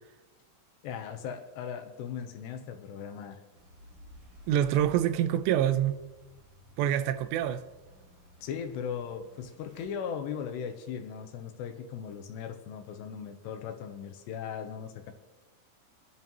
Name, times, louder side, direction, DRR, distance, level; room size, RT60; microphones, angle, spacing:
voice 1, 0.8-3.4 8.4-15.1, left 7 dB, 75° left, 2.9 m, -38 dB
sound 1, 3.5-9.9, left 1 dB, 55° right, 1.6 m, -53 dB
voice 2, 4.5-6.1 6.8-7.6, right 11 dB, 80° right, 2.8 m, -26 dB
28.5 x 11.0 x 3.0 m
omnidirectional pair, 5.2 m